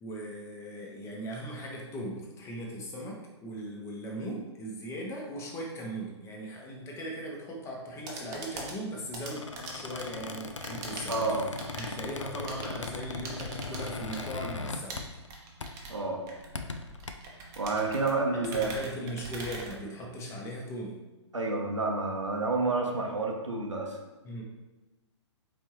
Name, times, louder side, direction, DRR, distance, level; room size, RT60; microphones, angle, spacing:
voice 1, 0.0-11.4 11.7-15.0 18.5-21.0 24.2-24.4, equal, 15° left, -1 dB, 0.8 m, -39 dB
sound 1, 7.8-20.4, right 3 dB, 25° right, 0.7 m, -44 dB
Squeak, 9.2-15.3 15.6-15.9 16.4-17.1, left 3 dB, 85° left, 0.4 m, -39 dB
voice 2, 11.1-11.5 15.9-16.2 17.6-18.7 21.3-24.0, right 3 dB, 85° right, 1 dB, 0.8 m, -29 dB
4.2 x 3.5 x 3.0 m, 1.1 s
figure-of-eight pair, 120°, 15 cm